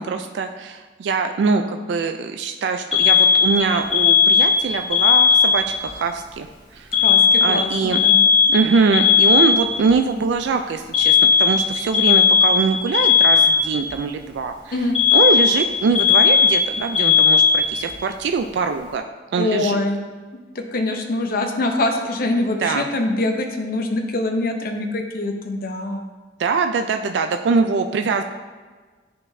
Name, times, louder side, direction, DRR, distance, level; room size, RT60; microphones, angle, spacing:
voice 1, 0.0-6.5 6.7-7.0 7.4-8.0 8.5-19.0 19.3-19.8 22.6-22.9 26.4-28.2, right 4 dB, 70° right, 6 dB, 0.3 m, -22 dB
Alarm, 2.9-5.9 6.9-9.9 10.9-13.9 14.9-17.9, left 6 dB, 30° left, 1.4 m, -16 dB
voice 2, 6.9-8.3 14.7-15.0 19.4-20.0 20.5-26.1, left 2 dB, 55° left, 4 dB, 0.6 m, -24 dB
9.8 x 3.8 x 2.6 m, 1.4 s
head